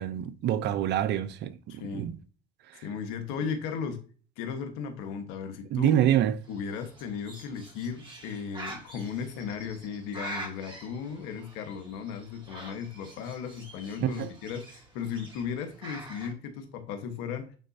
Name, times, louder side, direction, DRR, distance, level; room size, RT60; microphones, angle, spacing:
voice 1, 0.0-2.2 2.7-2.8 5.7-6.4 14.0-14.3, right 11 dB, 60° right, 0.7 m, -26 dB
voice 2, 1.7-2.1 2.8-4.0 4.4-6.0 6.5-17.5, left 6 dB, 85° left, 1.4 m, -36 dB
Bird, 6.4-16.3, right 1 dB, 25° right, 2.8 m, -45 dB
8.9 x 3.9 x 2.8 m
supercardioid pair, 85°, 20 cm